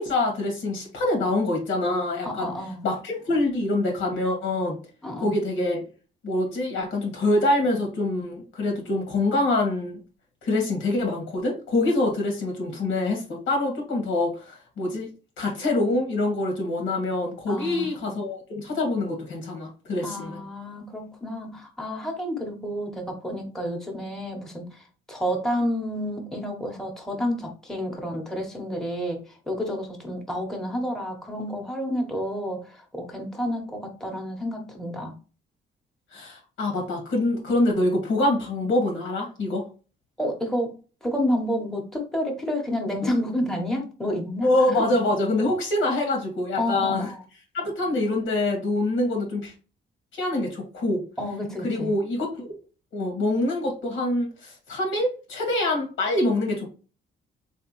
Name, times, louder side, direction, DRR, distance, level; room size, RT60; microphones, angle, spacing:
voice 1, 0.0-2.5 2.8-4.8 5.2-5.8 6.2-10.0 10.4-15.1 15.4-20.4 36.1-39.6 44.4-47.1 47.5-49.5 50.1-51.0 51.6-52.5 52.9-56.7, left 2 dB, 85° left, 1.9 m, -25 dB
voice 2, 2.2-2.8 5.0-5.4 17.5-18.2 20.0-24.8 25.1-35.1 40.2-40.7 41.0-44.5 46.6-47.1 51.2-51.9, equal, ahead, 1.1 m, -30 dB
3.6 x 3.2 x 3.1 m
cardioid pair, 90°, 20 cm